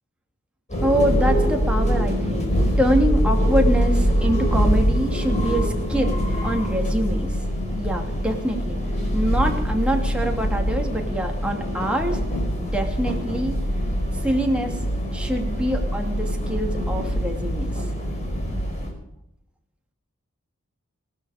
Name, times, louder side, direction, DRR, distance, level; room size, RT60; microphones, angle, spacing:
sound 1, 0.7-18.9, equal, 35° left, 4.8 m, -23 dB
voice 1, 0.8-2.5 2.8-7.3 7.7-8.8 9.1-12.2 12.6-13.6 14.2-14.8 15.1-17.7, equal, 5° right, 1 dB, 2.6 m, -25 dB
19.5 x 12.5 x 5.1 m, 0.79 s
head